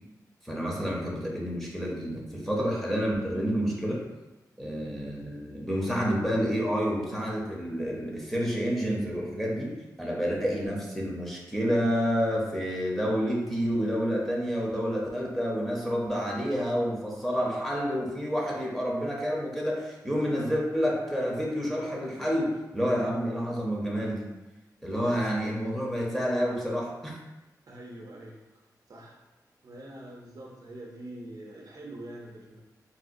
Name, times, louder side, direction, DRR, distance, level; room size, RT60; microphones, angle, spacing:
voice 1, 0.4-4.1 4.6-24.3 24.8-27.2, equal, 5° left, -4 dB, 0.7 m, -29 dB
voice 2, 22.8-23.1 25.0-25.3 27.7-28.5 28.9-29.2 29.6-32.6, right 1 dB, 60° right, -1 dB, 0.6 m, -44 dB
4.1 x 2.1 x 2.5 m, 1.1 s
wide cardioid pair, 90°, 7 cm